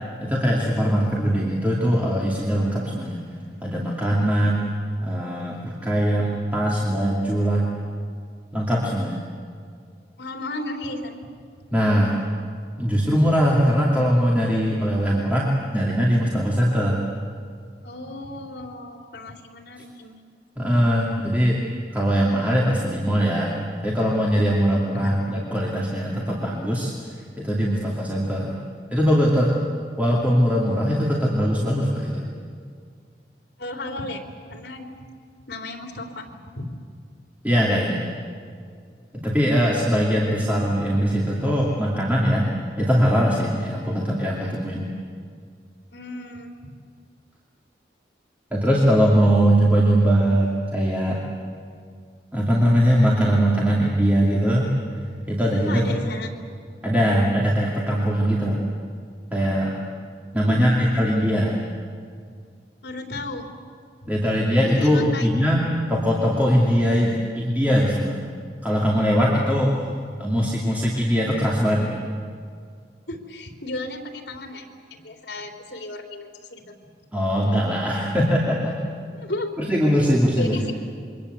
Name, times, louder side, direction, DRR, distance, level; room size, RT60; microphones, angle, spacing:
voice 1, 0.2-3.2 3.6-4.7 5.0-7.7 8.5-9.2 11.7-12.1 12.8-17.0 20.6-21.6 21.9-23.5 23.8-26.9 27.4-28.6 28.9-29.6 30.0-32.3 37.4-38.1 39.1-42.5 42.8-44.9 48.5-51.2 52.3-54.7 55.3-55.8 56.8-58.6 59.3-59.8 60.3-61.6 64.1-68.2 68.6-69.8 70.2-72.0 77.1-78.8 79.6-80.6, equal, 10° right, -5 dB, 2.7 m, -21 dB
voice 2, 10.2-11.3 17.8-20.2 24.9-25.1 33.6-34.2 34.5-35.0 35.5-36.7 45.9-46.7 55.7-56.3 60.4-60.8 62.8-63.5 64.0-64.1 64.8-65.3 73.1-76.6 79.2-79.5 80.3-80.7, left 2 dB, 70° left, 3 dB, 3.5 m, -34 dB
27.5 x 23.5 x 8.2 m, 2.1 s
head